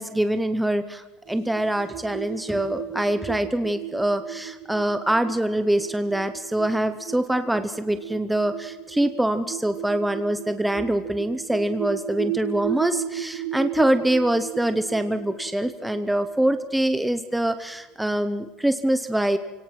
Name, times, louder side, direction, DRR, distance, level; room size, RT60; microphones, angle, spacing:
voice 1, 0.0-19.4, right 1 dB, 5° right, 10 dB, 0.7 m, -24 dB
sound 1, 1.3-17.6, right 12 dB, 80° right, 3.0 m, -35 dB
28.0 x 18.0 x 5.9 m, 1.2 s
cardioid pair, 155°, 0 cm